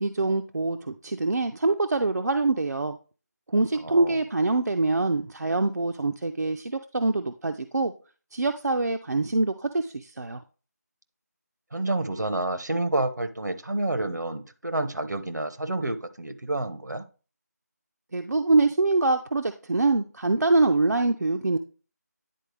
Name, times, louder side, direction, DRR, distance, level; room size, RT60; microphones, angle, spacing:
voice 1, 0.0-3.0 3.5-7.9 8.3-10.4 18.1-21.6, right 2 dB, 70° right, 6 dB, 0.6 m, -24 dB
voice 2, 3.7-4.2 11.7-17.1, right 2 dB, 85° right, 10 dB, 1.0 m, -29 dB
10.0 x 4.3 x 3.3 m, 0.36 s
figure-of-eight pair, 170°, 9 cm